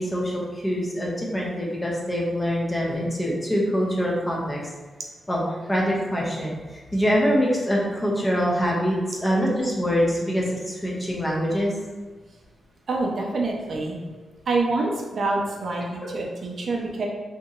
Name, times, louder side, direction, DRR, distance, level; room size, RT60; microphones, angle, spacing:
voice 1, 0.0-4.7 5.3-5.4 5.7-11.7 16.0-16.1, equal, 15° left, -3 dB, 0.5 m, -24 dB
voice 2, 12.9-14.0 14.5-17.1, right 3 dB, 50° right, -1 dB, 0.5 m, -26 dB
2.9 x 2.7 x 2.4 m, 1.3 s
wide cardioid pair, 155°, 0 cm